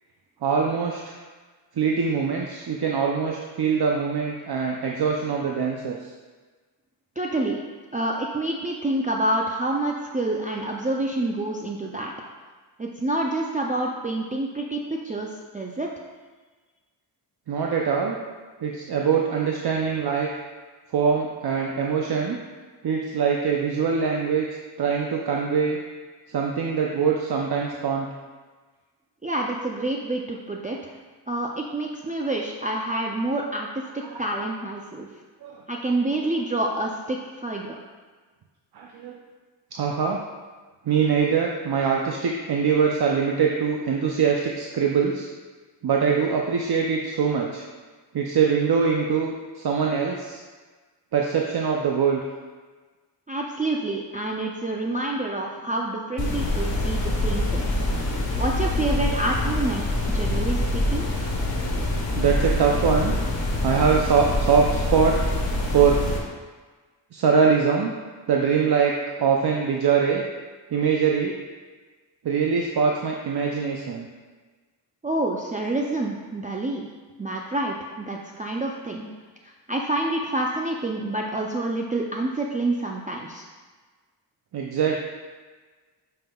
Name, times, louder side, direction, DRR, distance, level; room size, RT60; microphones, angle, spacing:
voice 1, 0.4-1.2 1.8-6.1 17.5-18.2 18.6-20.3 20.9-22.4 22.8-24.5 24.8-25.8 26.3-28.1 34.0-34.2 35.4-35.6 38.7-39.2 39.7-40.2 40.9-45.3 45.8-47.6 48.1-50.4 51.1-52.2 62.2-63.2 63.6-65.2 65.7-66.0 67.1-67.9 68.3-70.2 70.7-71.3 72.2-74.1 84.5-85.0, right 6 dB, 60° right, 0 dB, 0.6 m, -23 dB
voice 2, 7.2-7.6 7.9-12.1 12.8-15.9 29.2-30.9 31.3-33.7 33.9-35.1 35.7-37.8 53.3-57.8 58.3-61.1 75.0-76.9 77.2-79.1 79.4-83.4, right 2 dB, 20° right, -1 dB, 0.4 m, -28 dB
sound 1, 56.2-66.2, left 1 dB, 80° left, 1.4 m, -25 dB
8.9 x 5.6 x 2.3 m, 1.4 s
wide cardioid pair, 105°, 44 cm